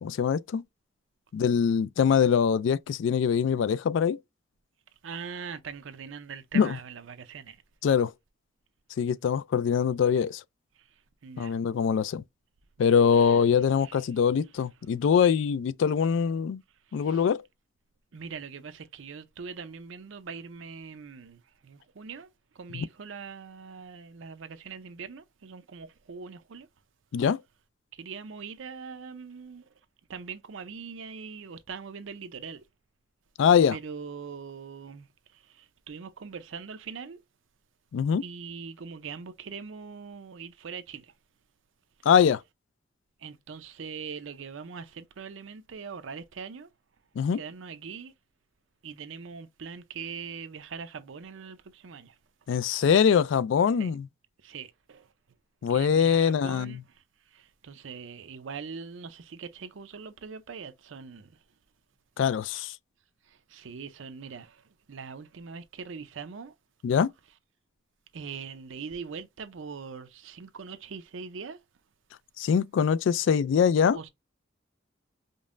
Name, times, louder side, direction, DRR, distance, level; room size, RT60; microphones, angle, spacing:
voice 1, 0.0-0.6 1.3-4.2 6.5-6.8 7.8-8.1 9.0-10.4 11.4-12.2 12.8-16.6 16.9-17.4 22.7-22.8 27.1-27.4 33.4-33.8 37.9-38.2 42.1-42.4 47.2-47.4 52.5-54.1 55.6-56.8 62.2-62.7 66.8-67.1 72.4-74.0, left 7 dB, 75° left, 0.3 m, -23 dB
voice 2, 5.0-7.6 10.8-10.9 11.2-11.6 13.1-13.4 13.8-14.0 16.9-17.2 18.1-22.3 22.5-26.7 27.9-29.7 30.1-32.7 33.7-35.1 35.3-37.2 38.2-41.1 43.2-46.7 47.3-48.1 48.8-52.2 53.8-53.9 54.4-55.1 55.7-56.8 57.3-61.4 63.3-66.5 68.1-71.6 73.8-74.1, right 5 dB, 80° right, 0.5 m, -42 dB
5.2 x 2.1 x 2.5 m
head